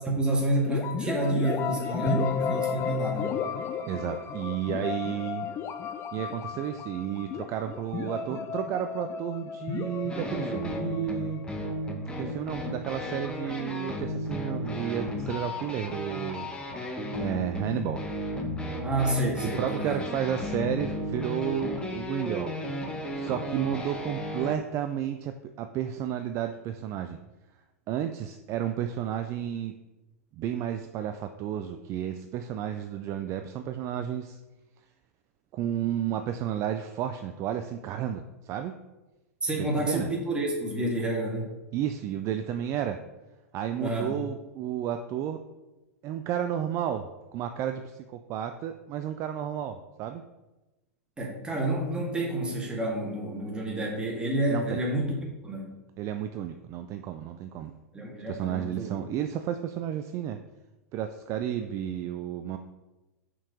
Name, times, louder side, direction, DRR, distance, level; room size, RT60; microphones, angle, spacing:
voice 1, 0.0-3.3 18.8-20.0 39.4-41.5 43.8-44.1 51.2-55.1 55.4-55.7 57.9-58.9, right 1 dB, 10° right, -1 dB, 1.9 m, -29 dB
sound 1, 0.7-12.4, left 7 dB, 30° left, 0.6 m, -34 dB
voice 2, 3.9-5.5 6.1-11.4 12.2-16.5 17.2-18.0 19.4-27.2 27.9-29.7 30.4-34.4 35.5-38.8 39.8-40.1 41.7-43.0 43.5-45.4 46.0-50.2 54.5-54.8 56.0-57.7 58.3-60.4 60.9-62.6, right 10 dB, 35° right, 8 dB, 0.4 m, -32 dB
sound 2, 10.1-24.6, left 1 dB, 10° left, 1.1 m, -34 dB
5.8 x 4.6 x 5.1 m, 1.1 s
hypercardioid pair, 100°, 8 cm